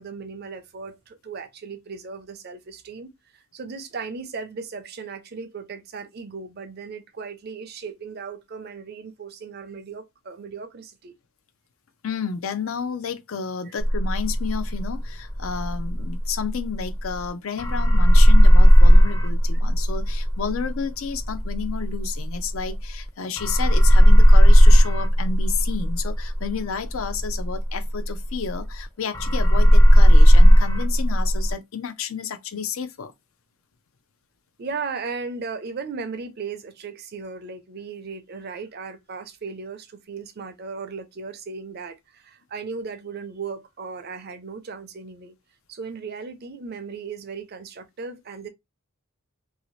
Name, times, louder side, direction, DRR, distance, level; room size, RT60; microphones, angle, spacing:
voice 1, 0.0-11.1 13.7-13.8 34.6-45.3 45.7-48.5, right 5 dB, 45° right, 0.5 m, -36 dB
voice 2, 12.0-33.1, left 6 dB, 70° left, 0.5 m, -31 dB
sound 1, 13.8-17.3 17.6-23.1 23.4-28.8 29.1-31.5, equal, 15° left, 0.5 m, -15 dB
2.7 x 2.7 x 3.1 m
head